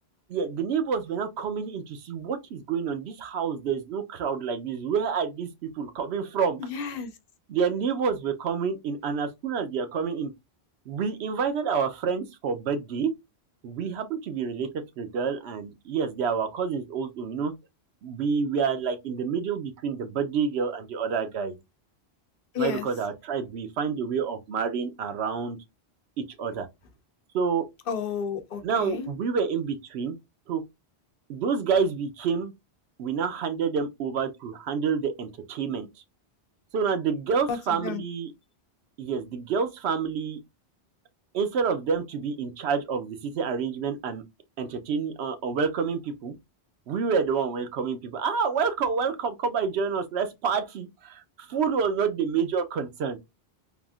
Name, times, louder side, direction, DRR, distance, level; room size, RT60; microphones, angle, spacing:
voice 1, 0.3-6.6 7.5-10.3 10.9-13.1 13.6-14.7 15.0-17.5 18.0-21.6 22.6-25.6 26.2-26.7 27.3-27.7 28.6-30.2 30.5-30.6 31.3-32.5 33.0-35.9 36.7-38.3 39.0-40.4 41.3-44.2 44.6-46.3 46.9-53.2, right 6 dB, 80° right, 0.9 m, -28 dB
voice 2, 6.7-7.1 22.5-22.9 27.9-29.1 37.5-38.0, left 6 dB, 65° left, 0.8 m, -31 dB
3.4 x 2.5 x 2.3 m
omnidirectional pair, 1.1 m